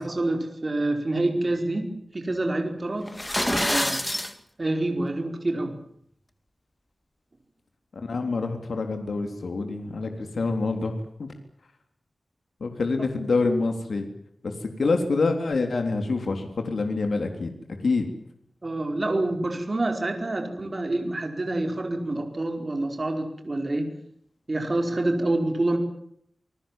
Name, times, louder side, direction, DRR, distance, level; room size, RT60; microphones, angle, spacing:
voice 1, 0.0-3.1 3.5-4.0 4.6-5.8 18.6-23.9 24.5-25.8, right 2 dB, 35° right, 5 dB, 4.8 m, -27 dB
sound 1, 3.1-4.3, left 1 dB, 10° left, 2.2 m, -26 dB
voice 2, 7.9-11.3 12.6-14.1 14.4-17.5 17.8-18.1, left 3 dB, 80° left, 5 dB, 3.6 m, -26 dB
28.5 x 20.0 x 7.5 m, 0.70 s
wide cardioid pair, 100°, 0 cm